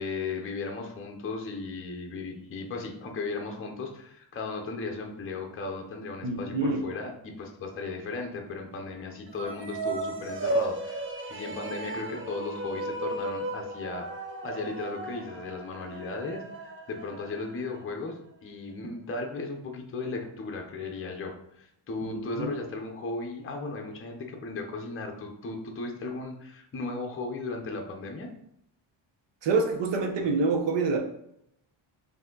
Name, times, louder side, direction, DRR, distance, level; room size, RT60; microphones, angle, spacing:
voice 1, 0.0-14.1 14.4-28.3, left 3 dB, 25° left, 2 dB, 0.6 m, -36 dB
voice 2, 6.2-6.8 22.0-22.5 29.4-31.0, right 4 dB, 60° right, 3 dB, 0.8 m, -27 dB
sound 1, 9.3-17.8, right 2 dB, 30° right, 0.4 m, -35 dB
4.7 x 2.8 x 3.8 m, 0.77 s
wide cardioid pair, 175°, 48 cm